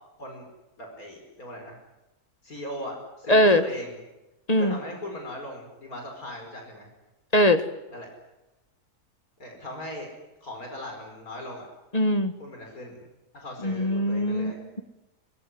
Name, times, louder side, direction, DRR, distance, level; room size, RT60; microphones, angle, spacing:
voice 1, 0.8-1.8 2.4-4.0 4.6-6.9 7.9-8.1 9.4-10.1 10.4-11.7 12.4-13.0 13.3-14.6, left 1 dB, 75° left, 2 dB, 5.4 m, -39 dB
voice 2, 3.3-3.6 4.5-4.8 7.3-7.6 11.9-12.3 13.6-14.8, left 1 dB, 25° left, 10 dB, 1.5 m, -21 dB
23.0 x 20.0 x 10.0 m, 0.99 s
omnidirectional pair, 1.5 m